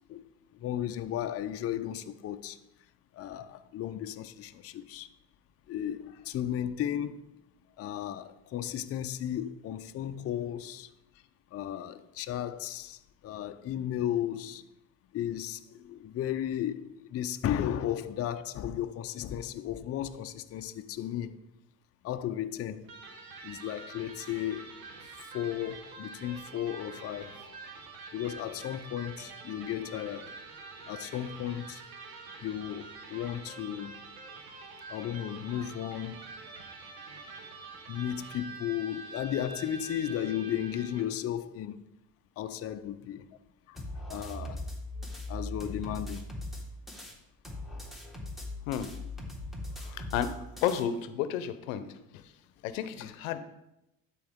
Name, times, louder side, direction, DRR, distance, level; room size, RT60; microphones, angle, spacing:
voice 1, 0.6-2.6 3.1-5.1 5.7-7.2 7.8-10.9 11.5-14.6 15.1-21.4 22.0-22.9 23.4-24.6 25.3-27.3 28.1-30.3 30.9-31.8 32.4-33.9 34.3-34.4 34.9-36.2 37.9-41.8 42.4-43.3 44.1-44.6 45.0-46.3 53.0-53.1, left 11 dB, 35° left, 0.6 m, -34 dB
Electric guitar, 22.8-41.2, right 3 dB, 85° right, 1.4 m, -46 dB
sound 1, 43.8-47.1 47.4-50.8, left 1 dB, ahead, 1.6 m, -40 dB
voice 2, 49.9-50.3 50.6-51.8 52.6-53.4, left 9 dB, 85° left, 0.7 m, -31 dB
11.5 x 4.6 x 3.6 m
supercardioid pair, 85°, 40 cm